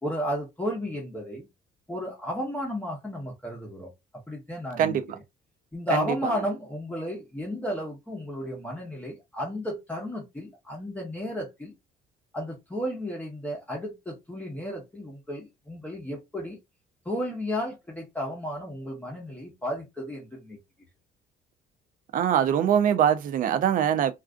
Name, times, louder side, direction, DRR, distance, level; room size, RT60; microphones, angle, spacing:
voice 1, 0.0-1.5 1.9-3.9 4.3-5.2 5.7-11.7 12.3-16.6 17.0-20.6, equal, 10° left, 0.8 m, -33 dB
voice 2, 22.1-24.1, right 9 dB, 55° right, 0.4 m, -23 dB
2.5 x 2.4 x 2.4 m
cardioid pair, 110°, 17 cm